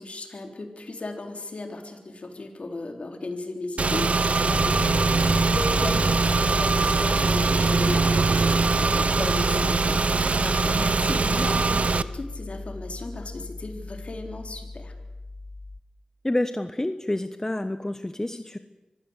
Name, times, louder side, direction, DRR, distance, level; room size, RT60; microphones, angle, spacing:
voice 1, 0.0-14.9, left 2 dB, 60° left, 4 dB, 3.7 m, -35 dB
Car / Engine, 3.8-12.0, right 4 dB, 65° right, 0.8 m, -22 dB
Piano, 4.5-15.8, left 2 dB, 45° left, 1.2 m, -34 dB
voice 2, 16.2-18.6, left 1 dB, 20° left, 9 dB, 1.2 m, -28 dB
25.0 x 16.0 x 8.2 m, 1.1 s
cardioid pair, 45°, 2 cm